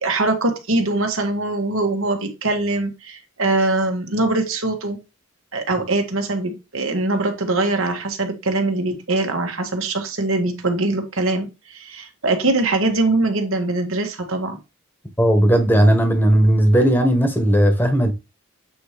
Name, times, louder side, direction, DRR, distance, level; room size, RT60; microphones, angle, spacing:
voice 1, 0.0-5.0 5.5-14.6, right 2 dB, 75° right, 1.8 m, -22 dB
voice 2, 15.2-18.1, right 1 dB, 10° left, 1.2 m, -16 dB
8.3 x 3.1 x 5.0 m
head